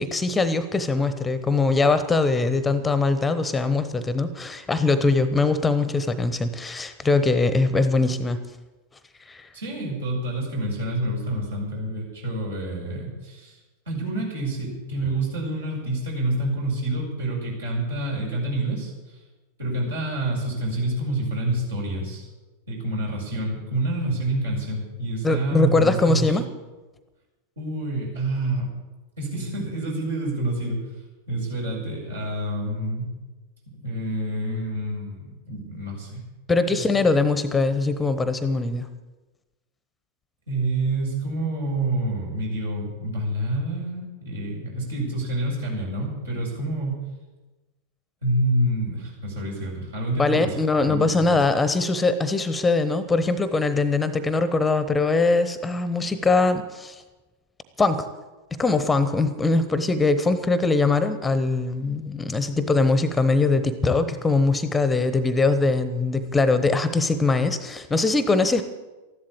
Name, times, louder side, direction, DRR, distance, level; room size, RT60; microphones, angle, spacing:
voice 1, 0.0-8.4 9.3-9.5 25.2-26.4 36.5-38.9 50.2-57.0 57.8-58.1 58.5-68.6, left 3 dB, 10° left, 12 dB, 1.0 m, -22 dB
voice 2, 9.5-13.6 13.9-19.2 19.6-22.3 22.7-26.4 27.6-28.7 29.2-30.9 31.3-33.1 33.8-36.2 36.7-37.0 40.5-47.0 48.2-51.3, right 1 dB, 70° right, -2 dB, 7.2 m, -28 dB
14.0 x 12.0 x 8.8 m, 1.2 s
figure-of-eight pair, 90°, 0 cm